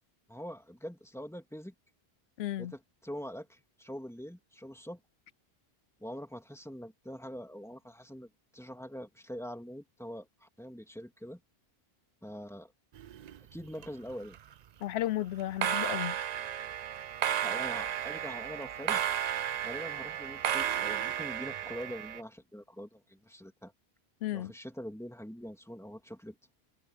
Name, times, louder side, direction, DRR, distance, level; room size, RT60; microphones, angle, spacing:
voice 1, 0.3-1.7 2.6-5.0 6.0-11.4 12.2-12.7 13.5-14.4 17.4-19.0 19.6-23.7 24.3-26.4, equal, 5° left, 2.6 m, -44 dB
voice 2, 2.4-2.7 14.8-16.2 24.2-24.5, left 13 dB, 85° left, 0.8 m, -33 dB
sound 1, 13.0-13.9 14.1-14.5 15.4-22.2, right 10 dB, 55° right, 0.5 m, -33 dB
omnidirectional pair, 1.0 m